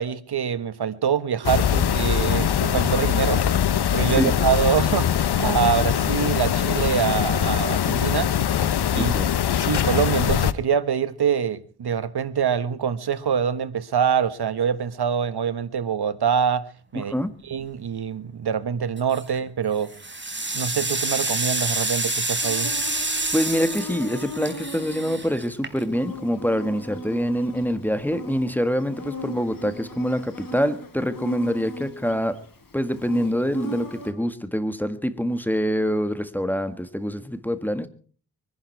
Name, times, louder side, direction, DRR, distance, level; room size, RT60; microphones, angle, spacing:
voice 1, 0.0-8.3 8.9-9.1 9.6-16.7 16.9-17.1 17.4-19.9 20.5-22.7, right 7 dB, 80° right, 1.3 m, -25 dB
sound 1, 1.4-10.5, left 9 dB, 85° left, 0.8 m, -22 dB
voice 2, 4.0-4.3 9.0-9.3 16.9-17.3 23.3-32.4 32.7-37.9, equal, 5° left, 1.7 m, -25 dB
sound 2, 19.0-19.4 19.8-26.1, right 2 dB, 30° right, 3.8 m, -28 dB
Insect, 22.4-34.1, left 1 dB, 60° left, 4.3 m, -38 dB
24.0 x 11.0 x 4.6 m
cardioid pair, 55°, 38 cm